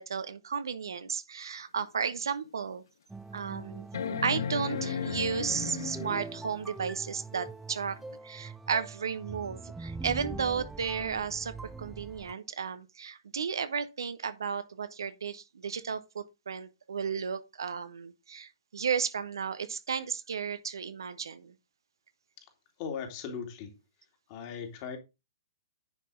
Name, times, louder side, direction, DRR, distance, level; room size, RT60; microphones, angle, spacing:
voice 1, 0.0-2.8 3.3-3.9 4.2-11.5 11.8-21.5, right 6 dB, 65° right, 1.0 m, -34 dB
sound 1, 1.8-1.9 2.5-2.6 3.9-6.4 8.1-8.2, left 7 dB, 60° left, 0.6 m, -35 dB
sound 2, 3.1-12.3, right 3 dB, 5° right, 0.5 m, -42 dB
voice 2, 22.8-23.7 24.3-25.0, left 6 dB, 40° left, 2.5 m, -38 dB
10.0 x 5.5 x 3.8 m
figure-of-eight pair, 120°, 2 cm